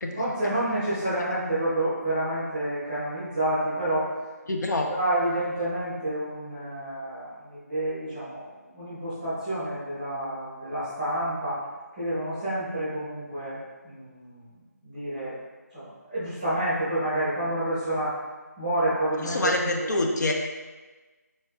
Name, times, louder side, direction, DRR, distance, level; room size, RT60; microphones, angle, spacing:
voice 1, 0.1-4.1 4.9-8.5 8.7-11.6 11.9-14.5 14.8-15.4 15.7-18.1 18.6-20.0, right 1 dB, ahead, -15 dB, 0.7 m, -29 dB
voice 2, 4.5-4.9 19.2-20.3, left 2 dB, 85° left, 2 dB, 0.5 m, -26 dB
3.9 x 2.4 x 2.3 m, 1.2 s
figure-of-eight pair, 180°, 9 cm